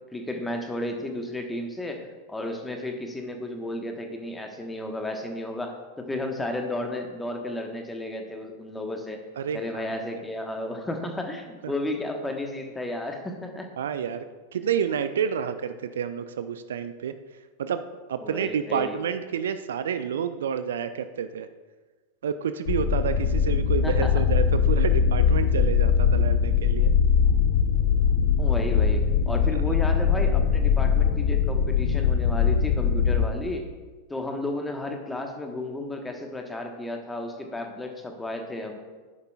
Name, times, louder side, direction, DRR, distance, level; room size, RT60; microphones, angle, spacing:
voice 1, 0.1-9.2 9.5-13.7 18.2-19.0 23.8-24.1 28.4-33.6 34.1-38.8, left 1 dB, 10° left, 4 dB, 1.2 m, -33 dB
voice 2, 13.8-14.2 14.5-17.1 17.6-21.5 22.2-26.9 29.5-29.6, right 8 dB, 60° right, 11 dB, 0.4 m, -29 dB
sound 1, 22.7-33.3, left 7 dB, 55° left, 0.8 m, -21 dB
12.0 x 10.0 x 2.4 m, 1.3 s
figure-of-eight pair, 90°, 0 cm